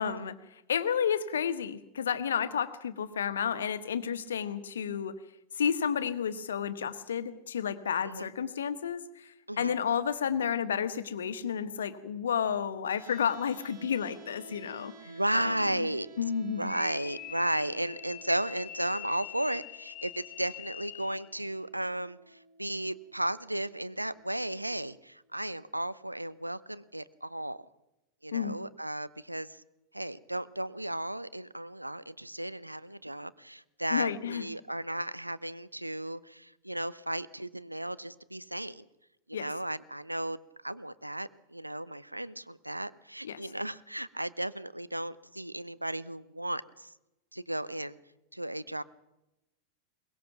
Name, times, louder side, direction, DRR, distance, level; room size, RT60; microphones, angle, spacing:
voice 1, 0.0-5.2 5.5-15.9 16.2-16.7 28.3-28.6 33.9-34.4 39.3-39.5 43.2-43.5, left 7 dB, 65° left, 13 dB, 1.4 m, -31 dB
sound 1, 13.0-25.0, right 2 dB, 55° right, 4.8 m, -54 dB
voice 2, 15.1-16.1 16.6-27.6 28.2-29.6 29.9-38.9 39.3-40.4 40.6-46.9 47.3-48.0 48.3-48.8, right 1 dB, 85° right, 17 dB, 0.8 m, -34 dB
sound 2, 16.6-21.3, left 18 dB, 40° left, 0.6 m, -44 dB
22.5 x 21.0 x 6.0 m, 0.92 s
figure-of-eight pair, 90°, 0 cm